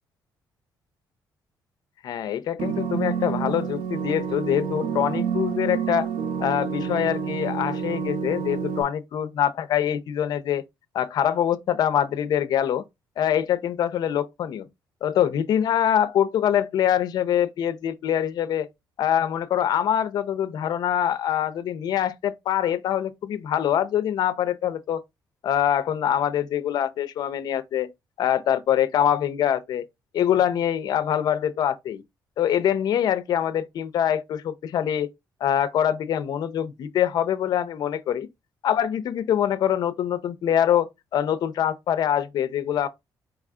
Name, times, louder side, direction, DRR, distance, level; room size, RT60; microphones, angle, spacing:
voice 1, 2.0-6.1 6.4-10.6 10.9-12.8 13.2-14.7 15.0-18.7 19.0-25.0 25.4-27.9 28.2-29.8 30.1-32.0 32.4-35.1 35.4-38.3 38.6-42.9, left 10 dB, 60° left, 0.6 m, -24 dB
sound 1, 2.6-8.8, right 7 dB, 90° right, 0.6 m, -28 dB
4.8 x 2.4 x 3.6 m
cardioid pair, 155°, 8 cm